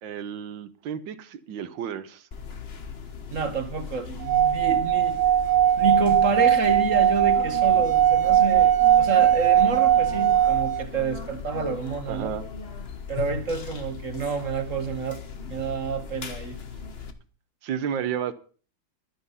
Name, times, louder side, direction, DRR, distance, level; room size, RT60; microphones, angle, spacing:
voice 1, 0.0-2.3 12.1-12.4 17.6-18.3, right 8 dB, 65° right, 1.6 m, -32 dB
sound 1, 2.3-17.1, left 5 dB, 35° left, 1.1 m, -38 dB
voice 2, 3.3-5.2 5.8-12.3 13.1-15.2 15.5-16.6, right 4 dB, 45° right, 1.4 m, -29 dB
Singing / Glass, 4.2-10.8, right 11 dB, 80° right, 1.7 m, -20 dB
12.5 x 10.5 x 5.6 m
omnidirectional pair, 2.3 m